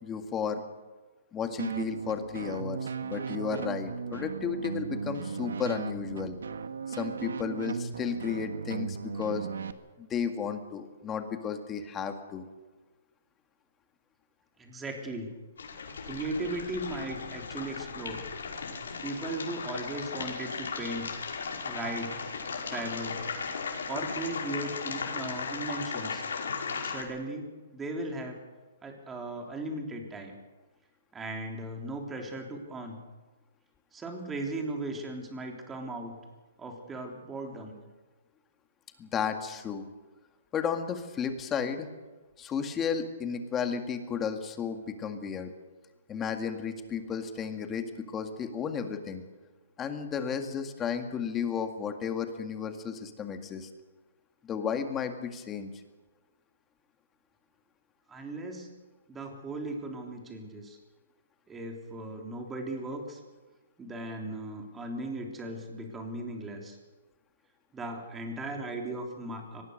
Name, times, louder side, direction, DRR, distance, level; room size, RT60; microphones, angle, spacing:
voice 1, 0.0-0.6 1.3-6.4 6.9-9.5 10.0-12.5 39.0-39.8 40.5-41.9 42.4-45.5 46.1-49.2 49.8-53.7 54.4-55.7, left 7 dB, 15° left, 6 dB, 2.0 m, -33 dB
sound 1, 1.6-9.7, right 6 dB, 80° right, 1.6 m, -36 dB
voice 2, 14.6-15.3 16.1-18.2 19.0-21.1 21.6-22.2 22.7-23.2 23.9-26.2 26.8-27.4 27.7-28.4 28.8-30.3 31.1-33.0 33.9-36.1 36.6-37.7 58.1-58.7 59.1-60.8 61.5-63.2 63.8-66.8 67.7-69.6, right 2 dB, 10° right, 2 dB, 3.5 m, -37 dB
sound 2, 15.6-27.0, left 5 dB, 80° left, 5.6 m, -36 dB
24.0 x 19.5 x 6.7 m, 1.2 s
hypercardioid pair, 155°, 0 cm